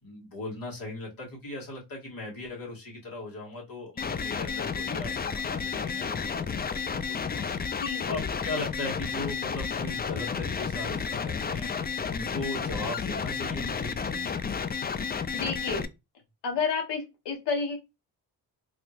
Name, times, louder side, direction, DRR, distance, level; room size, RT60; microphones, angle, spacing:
voice 1, 0.0-7.5 7.8-11.7 12.1-14.3, left 2 dB, 55° left, -2 dB, 2.2 m, -38 dB
sound 1, 4.0-15.8, left 6 dB, 25° left, 0.4 m, -32 dB
voice 2, 7.5-8.1 15.3-15.9 16.4-17.8, left 5 dB, 75° left, 3 dB, 1.5 m, -31 dB
3.5 x 2.7 x 2.6 m, 0.23 s
supercardioid pair, 55°, 42 cm